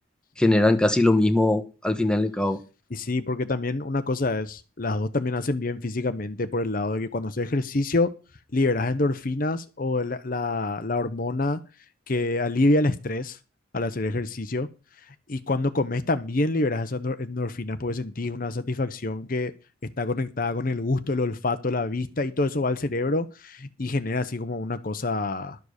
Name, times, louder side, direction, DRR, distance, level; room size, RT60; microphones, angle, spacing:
voice 1, 0.4-2.6, left 2 dB, 5° left, 1.1 m, -21 dB
voice 2, 2.9-8.1 8.5-11.6 12.1-13.4 13.7-14.7 15.1-19.5 20.0-25.6, left 2 dB, 45° left, 0.9 m, -26 dB
12.0 x 7.3 x 6.5 m
head